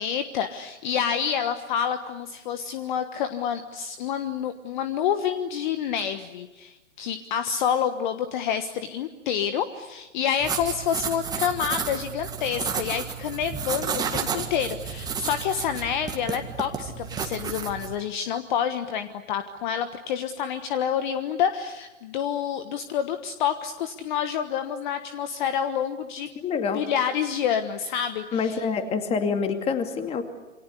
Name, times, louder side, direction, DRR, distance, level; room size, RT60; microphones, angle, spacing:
voice 1, 0.0-26.3 26.7-28.6, left 8 dB, 35° left, 9 dB, 1.4 m, -28 dB
sound 1, 10.4-17.9, right 6 dB, 10° right, 1.9 m, -32 dB
voice 2, 26.4-26.8 28.3-30.2, left 5 dB, 15° left, 6 dB, 2.4 m, -26 dB
28.0 x 25.0 x 8.3 m, 1.1 s
hypercardioid pair, 140°, 39 cm